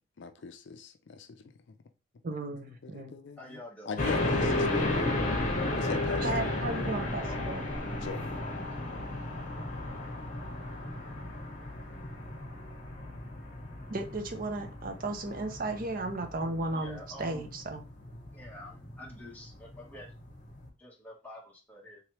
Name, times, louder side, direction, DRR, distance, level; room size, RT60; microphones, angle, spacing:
voice 1, 0.2-1.4 2.8-3.6 3.9-5.1 5.8-7.1 8.0-8.4, left 4 dB, 60° left, 0.4 m, -41 dB
voice 2, 2.2-3.1 6.2-7.7 13.9-17.8, right 2 dB, 45° right, 0.5 m, -35 dB
voice 3, 3.4-4.0 7.3-8.1 8.4-9.0 16.7-17.6 18.3-20.1 20.8-22.0, left 1 dB, 10° left, 1.2 m, -48 dB
sound 1, 4.0-20.7, left 2 dB, 40° left, 1.3 m, -34 dB
3.6 x 3.2 x 3.0 m
head